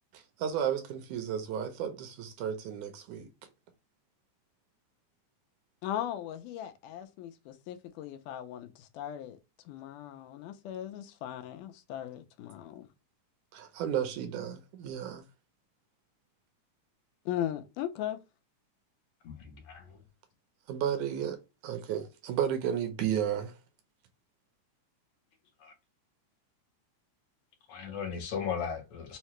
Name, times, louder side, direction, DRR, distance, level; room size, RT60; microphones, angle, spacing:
voice 1, 0.1-3.3 13.5-15.2 20.7-23.6, right 9 dB, 75° right, 2.0 m, -33 dB
voice 2, 5.8-9.4 9.7-12.9 17.3-18.2, left 11 dB, 85° left, 2.1 m, -38 dB
voice 3, 19.2-20.0 25.6-25.7 27.7-29.2, left 7 dB, 70° left, 1.9 m, -37 dB
5.6 x 2.2 x 2.9 m
omnidirectional pair, 3.7 m